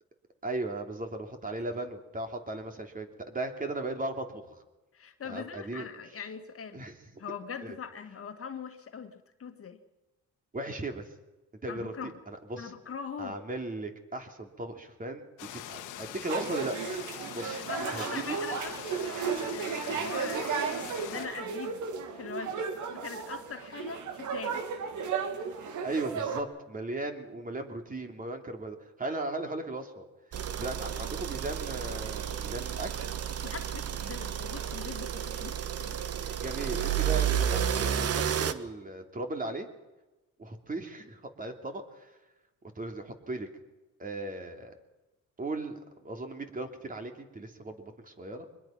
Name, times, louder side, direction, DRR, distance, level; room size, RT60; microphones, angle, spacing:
voice 1, 0.4-4.6 5.2-5.9 6.7-6.9 7.6-7.8 10.5-11.1 11.6-12.7 13.2-15.2 15.5-17.6 17.9-18.4 19.9-20.1 25.8-30.0 30.6-33.0 36.2-39.7 40.4-42.1 42.7-43.5 44.0-44.7 45.4-45.8 46.0-48.4, right 2 dB, 30° right, 5 dB, 3.1 m, -37 dB
voice 2, 4.9-6.8 7.2-9.8 11.7-12.1 12.6-13.4 17.4-18.8 19.5-20.8 21.0-21.8 22.1-22.6 22.9-24.6 29.3-29.5 33.4-36.0, left 6 dB, 50° left, 7 dB, 1.9 m, -42 dB
sound 1, 15.4-21.3, left 11 dB, 90° left, 1.6 m, -43 dB
sound 2, 16.3-26.4, right 6 dB, 75° right, 2.5 m, -34 dB
sound 3, 30.3-38.5, right 9 dB, 55° right, 1.3 m, -31 dB
23.5 x 21.0 x 6.0 m, 1.1 s
cardioid pair, 90°, 30 cm